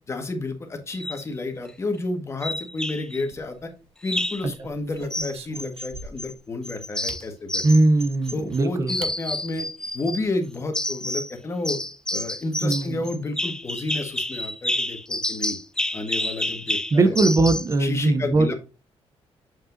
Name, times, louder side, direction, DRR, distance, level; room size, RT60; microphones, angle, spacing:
voice 1, 0.1-3.7 4.0-7.6 8.3-9.7 9.9-11.8 12.1-15.6 15.9-17.2 17.8-18.5, left 2 dB, 25° left, 1.5 m, -31 dB
sound 1, 0.9-1.2 2.4-3.2 4.0-4.5 5.1-6.3 6.6-8.6 8.9-10.2 10.7-11.3 11.6-17.7, left 1 dB, 5° left, 0.5 m, -29 dB
sound 2, 3.2-3.9 4.4-6.4 7.1-7.3 8.4-8.5 9.0-9.2 9.5-9.6 9.9-10.3, right 4 dB, 70° right, 1.2 m, -41 dB
voice 2, 7.6-8.9 12.6-13.0 16.9-18.5, right 2 dB, 30° right, 0.7 m, -20 dB
7.5 x 5.3 x 2.6 m
cardioid pair, 135°, 10 cm